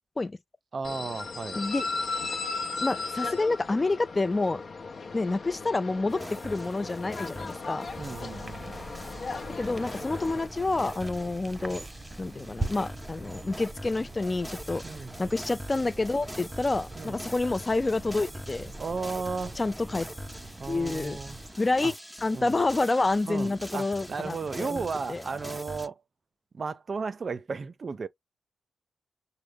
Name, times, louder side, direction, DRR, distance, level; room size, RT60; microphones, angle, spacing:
voice 1, 0.7-1.6 8.0-8.9 14.8-15.1 16.9-17.2 18.8-19.6 20.6-21.9 22.3-22.6 23.2-26.0 26.5-28.1, right 4 dB, 50° right, 0.5 m, -35 dB
sound 1, 0.8-10.5, left 4 dB, 60° left, 0.7 m, -36 dB
voice 2, 2.8-4.6 5.1-7.9 9.6-11.9 12.2-14.8 15.2-18.7 19.6-20.1 20.7-21.2 21.6-21.9 22.2-24.8 25.1-25.2, left 3 dB, 30° left, 0.3 m, -28 dB
sound 2, 6.1-25.9, equal, 5° right, 0.7 m, -43 dB
sound 3, 7.9-21.5, right 2 dB, 20° right, 1.0 m, -42 dB
6.2 x 2.1 x 3.4 m
cardioid pair, 65°, 0 cm